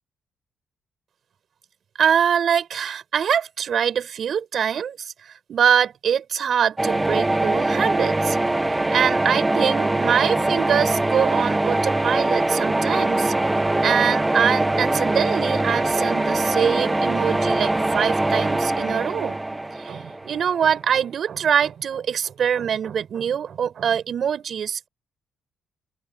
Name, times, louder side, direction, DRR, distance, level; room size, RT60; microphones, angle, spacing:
voice 1, 2.0-8.4 8.9-13.3 13.8-19.4 19.8-24.9, right 8 dB, 60° right, 7.0 m, -23 dB
sound 1, 6.8-20.6, right 2 dB, 15° right, 1.3 m, -22 dB
open air
cardioid pair, 90°, 0 cm